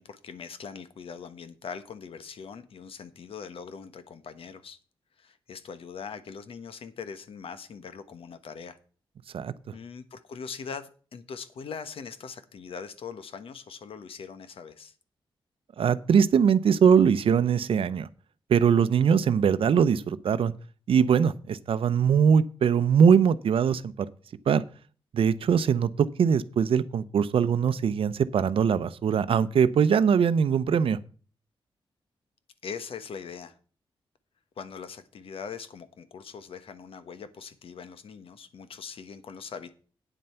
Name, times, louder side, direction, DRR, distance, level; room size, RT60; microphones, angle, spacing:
voice 1, 0.0-4.8 5.2-8.8 9.7-14.9 32.6-33.6 34.6-39.7, left 6 dB, 70° left, 11 dB, 1.1 m, -41 dB
voice 2, 15.8-18.1 18.5-20.5 20.9-24.1 24.5-24.6 25.1-31.0, right 7 dB, 70° right, 15 dB, 0.7 m, -22 dB
9.2 x 7.7 x 5.7 m, 0.40 s
wide cardioid pair, 120°, 10 cm